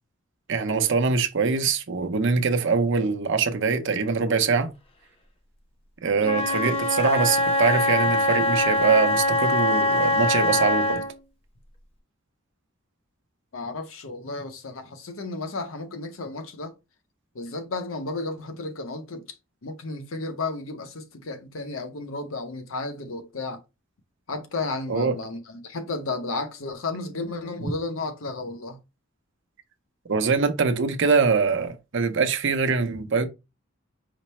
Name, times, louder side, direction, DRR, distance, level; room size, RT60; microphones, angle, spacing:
voice 1, 0.5-4.7 6.0-11.0 24.9-25.1 30.1-33.3, right 5 dB, 65° right, 0.7 m, -23 dB
Wind instrument woodwind instrument, 6.2-11.2, left 1 dB, 30° left, 0.6 m, -23 dB
voice 2, 13.5-16.7 17.3-19.3 19.6-23.6 24.3-28.8, left 3 dB, 80° left, 0.8 m, -33 dB
5.0 x 2.1 x 4.2 m
head